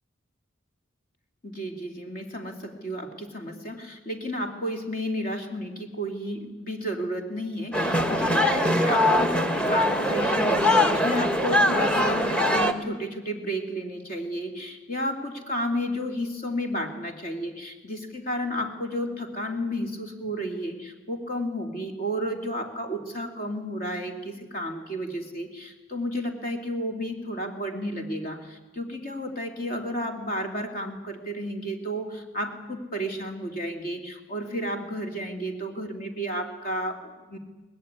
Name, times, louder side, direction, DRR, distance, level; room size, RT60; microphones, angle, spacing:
voice 1, 1.4-37.4, equal, 45° left, 4 dB, 2.7 m, -32 dB
sound 1, 7.7-12.7, left 1 dB, 5° left, 1.3 m, -22 dB
23.5 x 19.0 x 9.6 m, 1.2 s
head